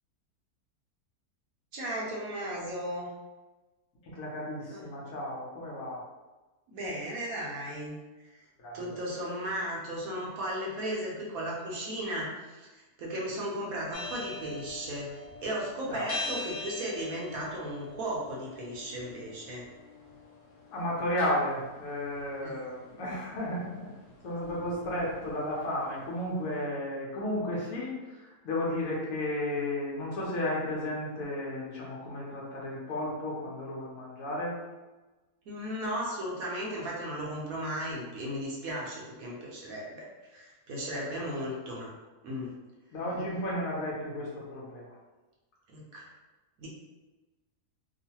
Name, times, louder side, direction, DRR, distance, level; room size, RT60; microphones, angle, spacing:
voice 1, 1.7-3.1 4.7-4.9 6.7-8.0 8.7-12.7 13.0-19.6 22.4-22.6 35.5-41.9 42.2-42.5 45.7-46.1 46.6-46.7, equal, 70° right, -4 dB, 1.0 m, -36 dB
voice 2, 4.0-6.0 8.6-9.0 15.9-16.2 20.7-23.9 24.2-34.6 40.9-41.0 42.9-44.8, left 1 dB, 65° left, -5 dB, 1.1 m, -33 dB
sound 1, 13.9-26.0, left 2 dB, 90° left, 1.2 m, -44 dB
3.0 x 2.1 x 2.8 m, 1.2 s
omnidirectional pair, 1.6 m